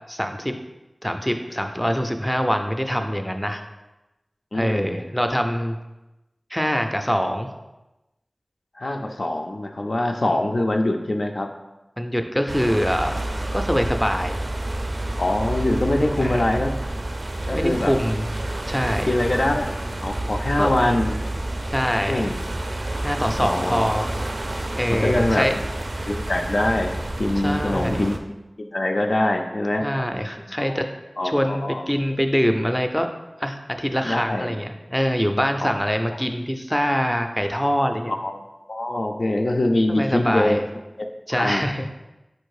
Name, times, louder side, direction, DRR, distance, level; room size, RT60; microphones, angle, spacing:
voice 1, 0.1-0.6 1.0-3.6 4.5-5.8 6.5-7.5 12.0-13.2 13.5-14.4 16.2-16.5 17.5-18.3 18.7-19.1 20.6-20.7 21.7-22.3 23.0-24.1 24.7-25.5 27.4-28.0 29.8-30.9 31.2-33.1 33.4-38.1 39.9-40.6 41.3-41.9, equal, 10° left, 6 dB, 0.4 m, -24 dB
voice 2, 4.5-5.0 8.8-11.5 15.2-16.7 17.5-17.9 19.1-19.8 20.0-21.2 22.1-22.4 23.4-23.8 24.1-24.2 24.9-25.5 26.1-29.9 30.6-30.8 31.2-31.9 34.0-34.5 35.6-35.7 38.1-38.4 38.7-40.6 41.4-41.6, left 1 dB, 75° left, 4 dB, 0.4 m, -23 dB
sound 1, 12.5-28.2, right 1 dB, 70° right, 0.4 m, -29 dB
4.1 x 2.6 x 4.7 m, 1.0 s
wide cardioid pair, 50°, 0 cm